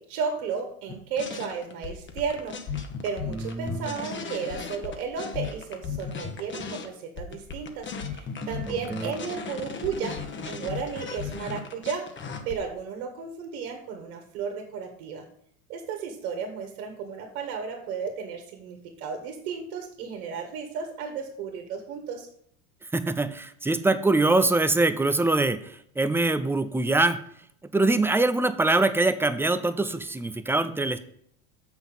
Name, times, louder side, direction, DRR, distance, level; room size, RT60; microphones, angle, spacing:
voice 1, 0.0-15.2 15.7-22.3, right 6 dB, 70° right, 4 dB, 1.8 m, -34 dB
sound 1, 0.9-6.9 7.2-12.6, left 5 dB, 25° left, 1.2 m, -36 dB
voice 2, 3.3-3.9 8.7-9.1 22.9-27.2 27.7-31.0, right 2 dB, 5° right, 12 dB, 0.4 m, -24 dB
7.0 x 6.1 x 5.6 m, 0.67 s
hypercardioid pair, 100°, 43 cm